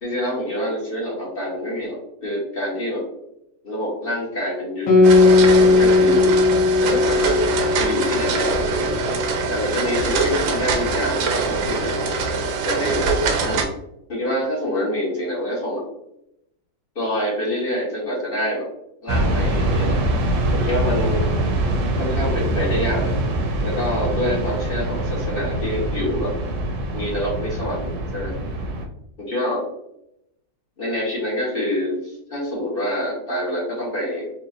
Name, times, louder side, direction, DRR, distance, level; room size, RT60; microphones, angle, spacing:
voice 1, 0.0-3.1 3.6-6.2 6.8-7.5 7.8-8.9 9.5-12.0 12.6-13.1 13.4-13.6 14.1-15.9 16.9-18.7 19.0-20.0 20.5-21.2 22.0-23.1 23.6-26.3 26.9-28.3 29.2-29.6 30.8-34.3, left 1 dB, 35° left, -5 dB, 1.1 m, -26 dB
Guitar, 4.9-9.8, left 3 dB, 85° left, 1.7 m, -17 dB
sound 1, 5.0-13.7, right 4 dB, 90° right, 1.4 m, -23 dB
sound 2, 19.1-28.8, right 1 dB, 75° right, 1.2 m, -23 dB
4.9 x 2.6 x 2.6 m, 0.80 s
omnidirectional pair, 2.0 m